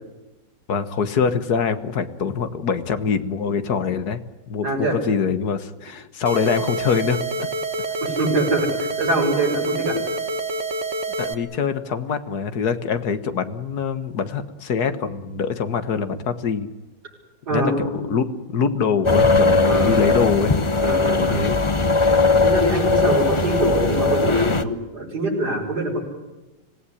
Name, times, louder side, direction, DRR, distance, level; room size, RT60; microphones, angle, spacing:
voice 1, 0.7-4.2 4.5-7.5 11.2-16.7 17.5-20.5 21.1-21.6, left 6 dB, 60° left, 11 dB, 1.9 m, -24 dB
voice 2, 4.6-5.0 8.0-10.0 17.5-18.1 19.7-20.0 20.8-21.4 22.4-26.0, right 2 dB, 60° right, -3 dB, 7.2 m, -24 dB
sound 1, 6.3-11.3, right 2 dB, 40° right, 1.6 m, -27 dB
sound 2, 19.0-24.6, left 3 dB, 25° left, 0.7 m, -19 dB
26.0 x 17.0 x 9.9 m, 1.1 s
omnidirectional pair, 2.0 m